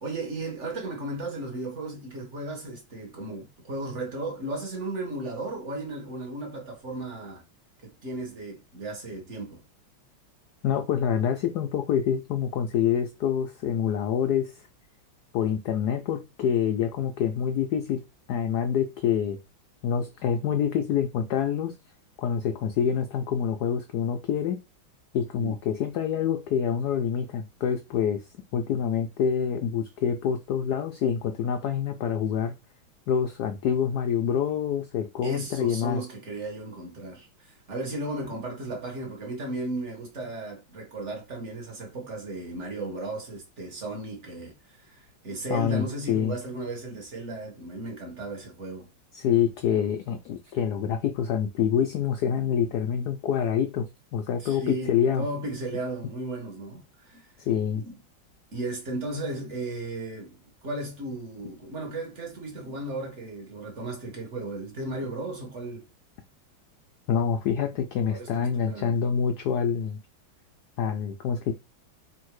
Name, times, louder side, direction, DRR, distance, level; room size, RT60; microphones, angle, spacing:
voice 1, 0.0-7.4 7.8-9.6 25.4-25.5 35.2-48.9 54.4-57.3 57.7-57.9 58.5-65.8 68.1-69.0, right 2 dB, 40° right, 1.3 m, -35 dB
voice 2, 10.6-14.5 15.3-18.0 18.3-19.4 19.8-21.7 22.2-24.6 25.1-28.2 28.5-32.5 33.1-36.0 45.5-46.3 49.1-55.2 57.4-57.8 67.1-70.0 70.8-71.5, left 8 dB, 80° left, 0.9 m, -26 dB
3.6 x 2.6 x 4.6 m
omnidirectional pair, 2.2 m